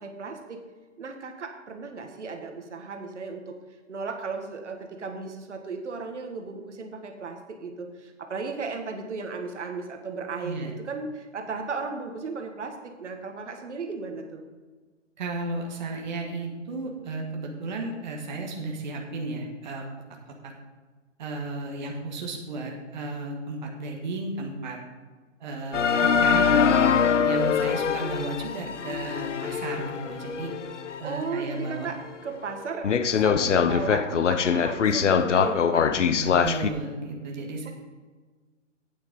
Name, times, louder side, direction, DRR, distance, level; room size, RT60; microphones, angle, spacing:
voice 1, 0.0-0.6 1.0-3.6 3.9-14.4 31.0-32.0 32.2-32.9 33.2-35.9, right 4 dB, 65° right, 4 dB, 1.6 m, -35 dB
voice 2, 15.2-19.8 20.4-20.5 21.2-24.8 25.4-26.8 27.2-30.5 31.0-31.9 36.2-37.7, right 2 dB, 35° right, 0 dB, 1.4 m, -34 dB
sound 1, 25.7-31.1 31.6-31.7 32.3-32.4 32.8-36.7, left 7 dB, 70° left, 0.8 m, -23 dB
9.0 x 8.1 x 5.3 m, 1.4 s
hypercardioid pair, 165°, 37 cm